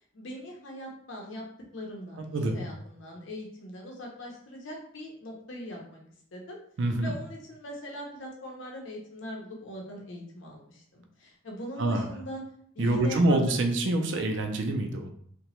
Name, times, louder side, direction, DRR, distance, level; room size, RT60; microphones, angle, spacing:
voice 1, 0.1-1.4 1.7-6.0 6.3-6.6 7.0-12.4 12.7-13.7, equal, 75° left, -1 dB, 0.7 m, -41 dB
voice 2, 6.8-7.1 11.8-12.1 12.8-15.1, right 2 dB, 70° right, 4 dB, 0.4 m, -26 dB
2.8 x 2.2 x 3.0 m, 0.64 s
head